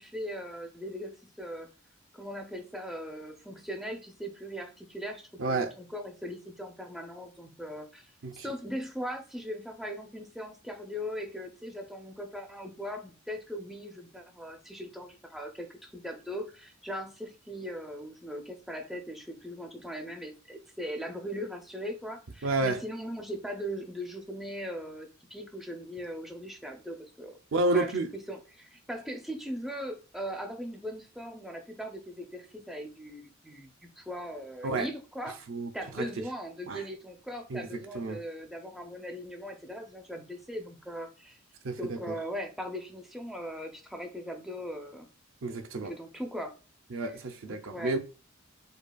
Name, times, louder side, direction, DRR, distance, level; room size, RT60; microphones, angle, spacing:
voice 1, 0.0-1.7 2.1-27.4 27.7-35.4 35.7-41.4 41.8-45.1 45.7-46.5 47.5-48.0, equal, ahead, 0.5 m, -39 dB
voice 2, 5.4-5.7 8.2-8.4 22.4-22.8 27.5-28.1 34.6-34.9 35.5-35.7 36.0-36.1 36.7-36.8 37.5-37.7 37.9-38.2 41.6-42.1 45.4-45.9 46.9-48.0, right 2 dB, 75° right, 0.6 m, -30 dB
5.1 x 2.3 x 2.3 m
head